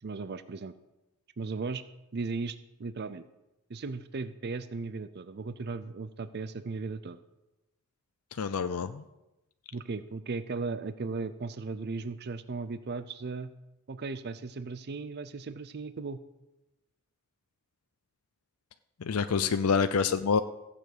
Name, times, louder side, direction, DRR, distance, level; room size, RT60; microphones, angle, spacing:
voice 1, 0.0-0.7 1.4-1.8 2.1-3.2 3.7-7.2 9.7-13.5 13.9-16.2 19.4-19.5, right 4 dB, 45° right, 13 dB, 0.5 m, -36 dB
voice 2, 8.4-9.0 19.0-20.4, left 5 dB, 75° left, 11 dB, 0.5 m, -27 dB
15.0 x 6.9 x 8.0 m, 0.99 s
head